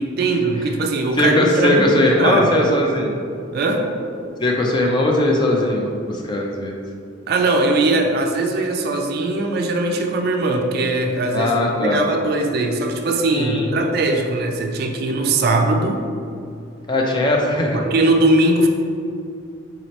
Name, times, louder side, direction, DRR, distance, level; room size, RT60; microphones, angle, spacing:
voice 1, 0.0-2.5 3.5-3.9 7.3-11.5 11.8-16.1 17.7-18.7, right 2 dB, 50° right, 3 dB, 0.3 m, -20 dB
voice 2, 1.2-3.1 4.4-6.8 11.3-12.0 13.3-13.7 16.9-17.8, left 1 dB, 25° left, 0 dB, 0.3 m, -19 dB
4.1 x 2.8 x 3.0 m, 2.4 s
head